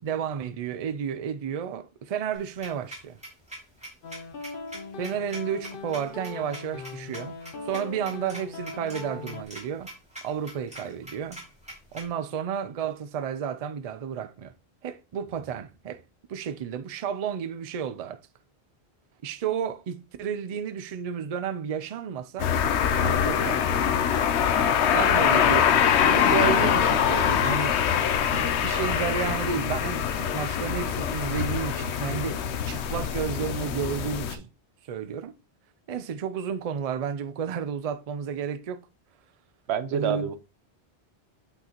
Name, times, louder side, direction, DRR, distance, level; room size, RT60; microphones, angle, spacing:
voice 1, 0.0-3.2 5.0-7.4 7.6-9.9 10.2-11.4 11.9-14.6 14.8-16.0 16.3-18.2 19.2-22.5 23.0-24.0 24.9-27.8 28.3-34.5 34.9-35.4 35.9-38.9 39.9-40.3, right 7 dB, 50° right, 0.4 m, -32 dB
sound 1, 2.3-12.0, right 1 dB, 5° right, 2.6 m, -43 dB
sound 2, 4.0-9.4, left 4 dB, 55° left, 0.9 m, -40 dB
sound 3, 22.4-34.3, left 8 dB, 85° left, 0.9 m, -24 dB
voice 2, 39.7-40.4, right 8 dB, 80° right, 0.9 m, -27 dB
8.1 x 5.6 x 2.9 m
omnidirectional pair, 1.1 m